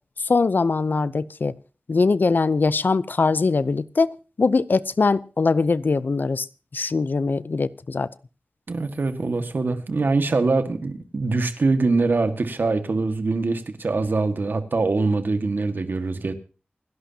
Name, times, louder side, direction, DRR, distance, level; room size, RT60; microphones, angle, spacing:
voice 1, 0.2-1.5 1.9-6.5 6.7-8.1, left 4 dB, 65° left, 0.6 m, -22 dB
voice 2, 8.7-16.3, right 3 dB, 75° right, 1.7 m, -23 dB
28.5 x 11.5 x 2.8 m
wide cardioid pair, 70°, 3 cm